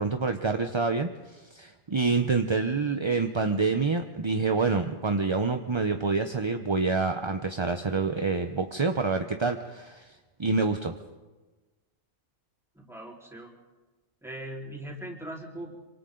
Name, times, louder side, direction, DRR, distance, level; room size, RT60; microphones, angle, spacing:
voice 1, 0.0-10.9, right 4 dB, 30° right, 6 dB, 0.7 m, -27 dB
voice 2, 12.8-13.5 14.2-15.8, right 1 dB, ahead, -3 dB, 4.1 m, -40 dB
27.0 x 25.0 x 3.9 m, 1.2 s
omnidirectional pair, 1.3 m